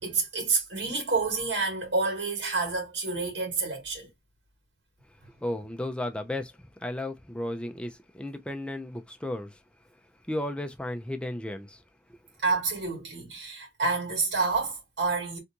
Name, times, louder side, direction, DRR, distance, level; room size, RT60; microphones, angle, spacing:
voice 1, 0.0-4.1 12.4-15.4, right 4 dB, 80° right, 2.2 m, -28 dB
voice 2, 5.4-9.6 10.3-11.8 12.1-12.2, left 1 dB, 5° left, 0.5 m, -34 dB
3.4 x 2.5 x 2.8 m
head